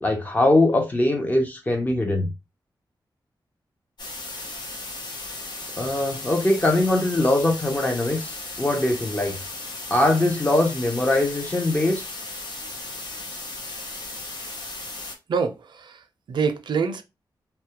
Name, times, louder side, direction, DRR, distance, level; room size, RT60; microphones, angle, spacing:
voice 1, 0.0-2.3 5.8-9.4 9.9-12.0, left 1 dB, 20° left, 0.5 m, -22 dB
sound 1, 4.0-15.2, left 2 dB, 65° left, 0.6 m, -36 dB
voice 2, 15.3-17.0, right 5 dB, 70° right, 0.4 m, -26 dB
2.2 x 2.1 x 2.8 m
wide cardioid pair, 150°, 8 cm